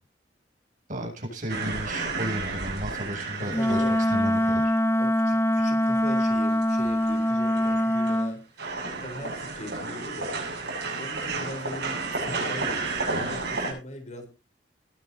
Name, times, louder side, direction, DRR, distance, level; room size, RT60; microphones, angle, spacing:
voice 1, 0.9-4.7, equal, 50° right, 0 dB, 8.0 m, -34 dB
sound 1, 1.5-4.9 5.4-5.5 5.8-8.3 8.6-13.7, right 3 dB, 65° right, 7.8 m, -33 dB
voice 2, 3.4-4.0 5.0-8.4 9.0-10.3 11.0-14.3, left 1 dB, 40° left, 4 dB, 4.3 m, -40 dB
Wind instrument woodwind instrument, 3.5-8.4, left 1 dB, 15° left, 0.8 m, -23 dB
21.0 x 11.0 x 2.8 m, 0.29 s
head